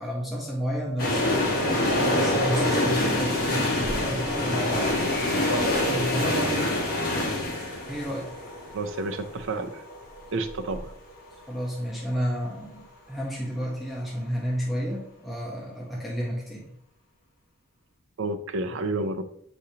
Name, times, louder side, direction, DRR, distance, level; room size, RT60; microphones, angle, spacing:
voice 1, 0.0-5.3 5.9-6.7 7.9-8.3 11.5-16.7, equal, ahead, -4 dB, 1.0 m, -31 dB
sound 1, 1.0-10.8 11.1-11.2, left 1 dB, 45° left, 1.9 m, -26 dB
voice 2, 8.7-9.9 10.3-10.9 18.2-19.2, right 2 dB, 60° right, 6 dB, 0.6 m, -30 dB
7.0 x 5.0 x 2.8 m, 0.71 s
head